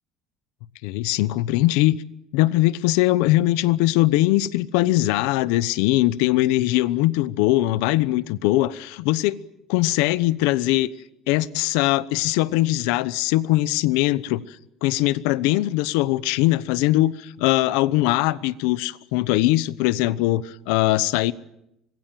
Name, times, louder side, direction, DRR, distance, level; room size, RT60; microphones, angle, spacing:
voice 1, 0.8-2.0 2.3-9.4 9.7-10.9 11.3-14.6 14.8-21.3, left 17 dB, 90° left, 0.9 m, -21 dB
25.5 x 21.5 x 7.6 m
cardioid pair, 135°, 0 cm